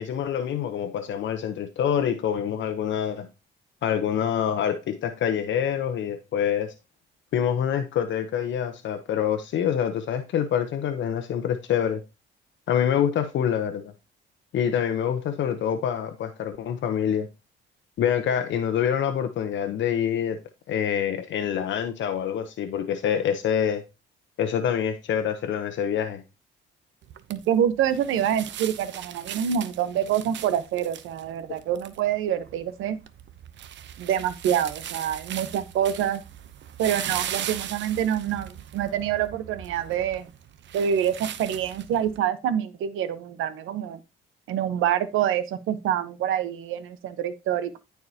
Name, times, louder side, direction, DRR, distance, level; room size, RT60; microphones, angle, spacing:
voice 1, 0.0-3.3 3.8-6.7 7.3-12.0 12.7-13.9 14.5-17.3 18.0-20.4 20.7-23.8 24.4-26.2, left 8 dB, 70° left, 0.9 m, -26 dB
sound 1, 27.0-42.2, right 10 dB, 65° right, 0.8 m, -39 dB
voice 2, 27.3-33.0 34.0-36.2 36.8-40.3 40.7-44.0 44.5-47.8, right 9 dB, 90° right, 1.0 m, -26 dB
14.0 x 4.7 x 2.8 m
cardioid pair, 90°, 20 cm